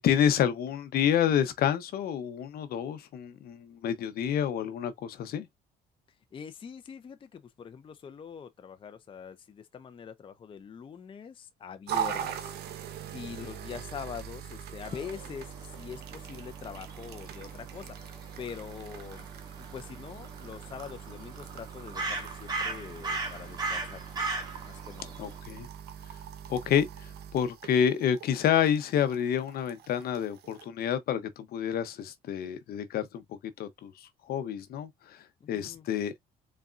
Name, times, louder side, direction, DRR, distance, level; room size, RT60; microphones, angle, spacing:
voice 1, 0.0-5.5 25.2-25.7 26.5-33.2 33.6-35.2 35.5-36.1, left 9 dB, 65° left, 0.9 m, -28 dB
voice 2, 6.3-18.0 18.4-19.3 19.6-24.0 24.6-25.2 35.4-35.9, left 7 dB, 30° left, 0.6 m, -44 dB
sound 1, 11.9-30.7, right 9 dB, 70° right, 1.0 m, -41 dB
sound 2, 14.8-25.4, right 3 dB, 25° right, 1.9 m, -39 dB
4.2 x 3.5 x 2.5 m
cardioid pair, 110°, 17 cm